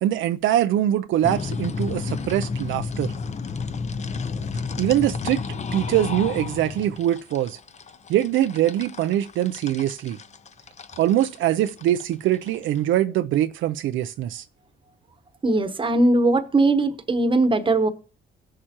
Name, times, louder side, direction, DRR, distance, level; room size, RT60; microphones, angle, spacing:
voice 1, 0.0-3.1 4.8-5.4 5.7-7.6 8.1-10.2 11.0-14.4, right 12 dB, 80° right, 0.5 m, -23 dB
sound 1, 1.2-12.8, left 4 dB, 35° left, 0.7 m, -31 dB
voice 2, 15.4-17.9, right 2 dB, 25° right, 1.0 m, -20 dB
16.5 x 6.6 x 2.9 m
cardioid pair, 90°, 20 cm